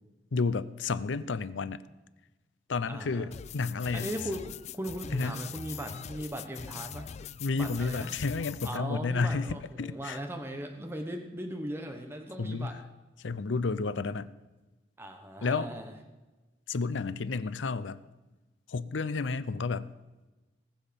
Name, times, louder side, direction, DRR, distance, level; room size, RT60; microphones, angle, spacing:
voice 1, 0.3-1.8 2.7-4.1 5.1-5.3 7.4-10.2 12.4-12.8 13.2-14.3 15.4-15.7 16.7-18.0 18.7-19.9, left 4 dB, 90° left, 16 dB, 0.6 m, -31 dB
voice 2, 2.9-3.3 3.9-7.1 7.5-8.1 8.6-12.8 15.0-15.9, right 1 dB, 15° right, 4 dB, 1.0 m, -38 dB
sound 1, 3.3-8.8, left 8 dB, 40° left, 0.3 m, -42 dB
19.0 x 7.2 x 5.3 m, 1.1 s
head